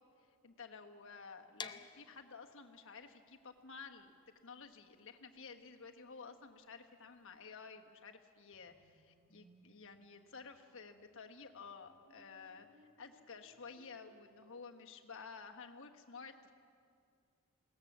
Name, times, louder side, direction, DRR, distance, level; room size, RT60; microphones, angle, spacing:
voice 1, 0.4-4.2 4.4-16.5, left 5 dB, 60° left, 4 dB, 1.4 m, -53 dB
sound 1, 1.6-7.4, left 5 dB, 20° left, 0.6 m, -53 dB
sound 2, 8.5-14.5, equal, 40° right, 4.1 m, -69 dB
21.0 x 18.0 x 7.4 m, 2.3 s
head